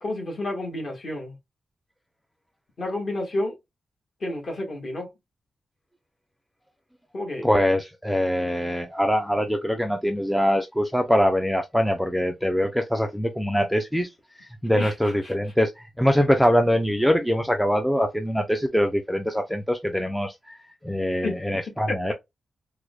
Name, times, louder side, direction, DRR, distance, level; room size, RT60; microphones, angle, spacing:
voice 1, 0.0-1.4 2.8-3.5 4.2-5.1 7.1-7.5 14.7-14.9 15.2-15.3 21.2-21.4 21.9-22.1, left 1 dB, 40° left, 1.2 m, -30 dB
voice 2, 7.4-14.1 14.6-15.7 16.0-20.6 20.8-22.1, equal, ahead, 0.3 m, -23 dB
4.6 x 2.1 x 2.2 m
wide cardioid pair, 160°, 0 cm